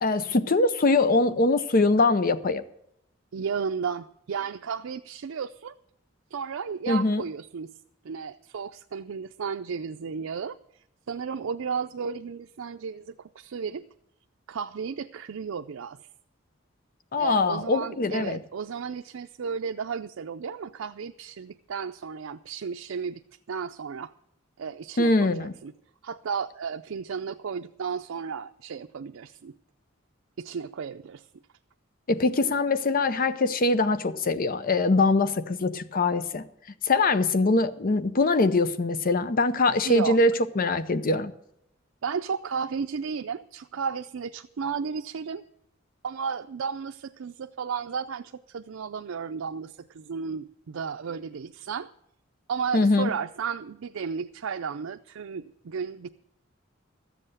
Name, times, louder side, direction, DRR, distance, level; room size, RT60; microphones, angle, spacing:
voice 1, 0.0-2.6 6.9-7.2 17.1-18.4 25.0-25.5 32.1-36.4 36.8-41.3 52.7-53.1, left 3 dB, 45° left, 0.6 m, -23 dB
voice 2, 3.3-5.7 6.3-7.7 8.0-10.6 11.1-13.8 14.5-16.1 17.2-23.2 23.5-24.1 24.6-25.7 26.0-29.5 30.4-31.3 39.8-40.2 42.0-45.4 46.0-51.9 52.5-56.1, right 6 dB, 85° right, 0.5 m, -33 dB
13.5 x 7.8 x 7.9 m
head